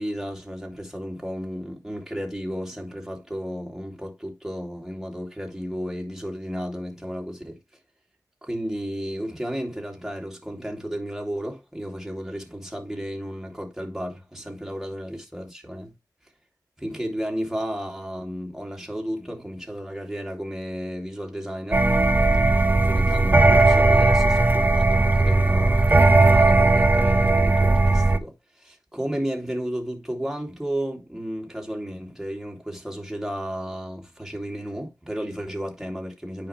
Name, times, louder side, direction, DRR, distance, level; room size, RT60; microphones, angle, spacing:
voice 1, 0.0-7.6 8.4-15.9 16.8-21.9 22.8-36.5, equal, 5° right, 2.9 m, -33 dB
sound 1, 21.7-28.2, right 2 dB, 25° right, 0.8 m, -17 dB
9.5 x 5.2 x 3.4 m
cardioid pair, 65°, 7 cm